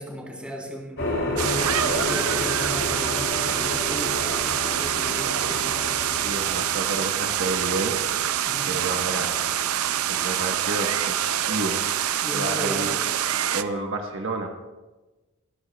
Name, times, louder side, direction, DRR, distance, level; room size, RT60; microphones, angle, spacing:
voice 1, 0.0-5.8 8.5-8.8 12.2-13.0, equal, 5° right, -2 dB, 3.5 m, -36 dB
sound 1, 1.0-11.1, left 2 dB, 60° left, 3.8 m, -32 dB
sound 2, 1.4-13.6, right 10 dB, 75° right, 0.5 m, -26 dB
voice 2, 6.0-8.0 8.7-9.4 10.0-11.8 12.3-12.9 13.5-14.5, right 2 dB, 60° right, 2 dB, 1.2 m, -30 dB
24.0 x 13.5 x 2.3 m, 1.2 s
head